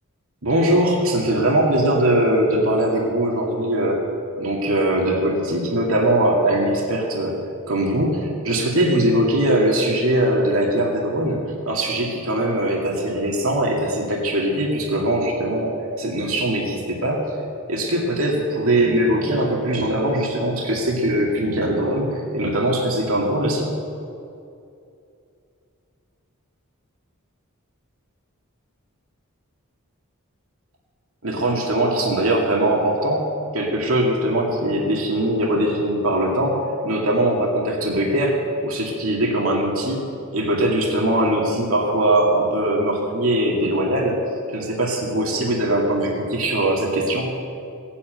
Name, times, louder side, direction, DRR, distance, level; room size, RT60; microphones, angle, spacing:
voice 1, 0.4-4.0 4.4-7.4 7.7-11.4 11.7-17.3 17.7-23.7 31.2-33.2 33.5-38.4 38.6-40.0 40.3-44.2 44.5-47.4, right 1 dB, 75° right, -1 dB, 2.2 m, -21 dB
17.5 x 8.5 x 9.1 m, 2.6 s
head